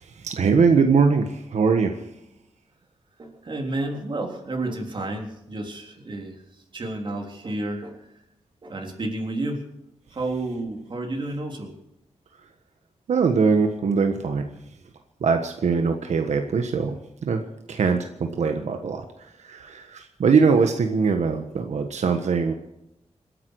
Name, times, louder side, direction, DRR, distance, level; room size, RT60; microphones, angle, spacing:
voice 1, 0.0-2.0 13.1-14.5 15.2-17.4 17.7-22.5, right 5 dB, 85° right, 5 dB, 1.4 m, -22 dB
voice 2, 3.2-6.4 6.7-8.0 8.6-9.7 10.1-11.7, right 2 dB, 45° right, 2 dB, 3.6 m, -31 dB
27.0 x 11.0 x 4.8 m, 0.86 s
wide cardioid pair, 140°, 11 cm